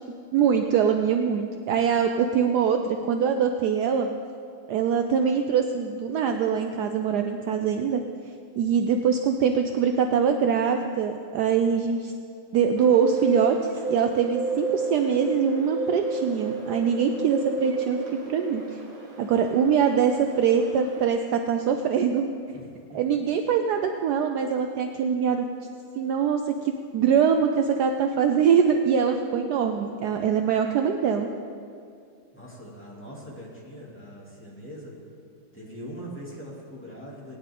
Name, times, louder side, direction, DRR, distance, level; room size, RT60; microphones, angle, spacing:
voice 1, 0.3-4.1 4.7-8.0 8.6-12.1 12.5-13.6 13.9-18.0 18.3-18.8 19.2-22.3 22.9-25.5 26.0-31.3, right 7 dB, 80° right, 6 dB, 0.9 m, -23 dB
Bird, 12.8-21.0, right 3 dB, 40° right, 2.3 m, -32 dB
voice 2, 22.5-23.0 32.3-34.9 35.5-37.4, equal, 5° left, -6 dB, 2.6 m, -42 dB
19.0 x 10.0 x 3.8 m, 2.3 s
omnidirectional pair, 2.4 m